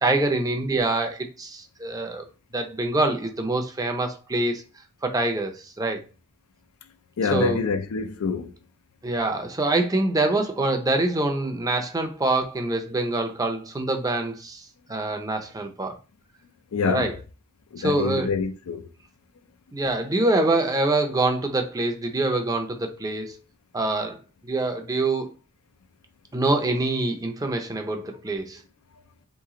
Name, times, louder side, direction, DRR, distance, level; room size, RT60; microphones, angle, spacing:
voice 1, 0.0-2.2 2.5-4.6 5.0-6.0 7.3-7.6 9.0-16.0 16.8-17.1 17.8-18.3 19.7-23.4 23.7-24.2 24.4-25.3 26.3-28.6, right 2 dB, 15° right, 0.5 m, -25 dB
voice 2, 7.2-8.5 16.7-17.1 17.7-18.9, left 5 dB, 80° left, 0.5 m, -26 dB
3.2 x 3.0 x 3.7 m
head